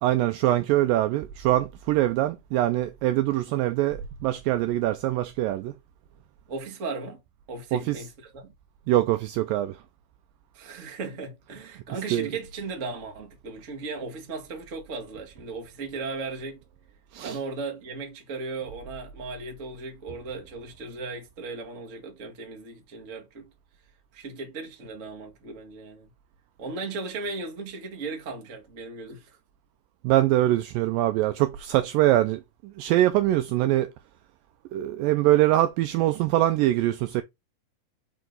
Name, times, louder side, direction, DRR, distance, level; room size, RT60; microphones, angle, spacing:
voice 1, 0.0-5.7 7.7-8.0 8.9-9.8 12.1-12.3 17.1-17.4 30.0-33.9 34.7-37.2, right 14 dB, 85° right, 2.0 m, -23 dB
voice 2, 6.5-7.2 7.5-8.5 10.5-16.6 17.2-23.5 24.1-26.1 26.6-29.4, right 3 dB, 60° right, 0.7 m, -36 dB
5.4 x 4.7 x 3.9 m
omnidirectional pair, 4.5 m